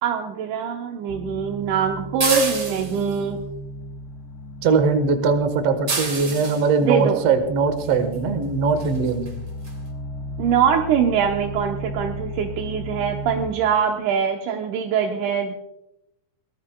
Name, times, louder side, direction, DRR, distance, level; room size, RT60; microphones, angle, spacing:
voice 1, 0.0-3.4 6.8-7.2 10.4-15.5, right 7 dB, 80° right, 2 dB, 2.5 m, -23 dB
sound 1, 1.1-13.5, equal, 70° left, 0.9 m, -35 dB
sound 2, 2.2-3.2 5.9-6.7 8.1-8.2 8.8-9.0 9.3-9.4 9.7-9.8, right 3 dB, 35° right, 2.8 m, -27 dB
voice 2, 4.6-9.3, right 4 dB, 60° right, 7 dB, 2.3 m, -21 dB
23.0 x 17.5 x 2.3 m, 0.88 s
omnidirectional pair, 3.5 m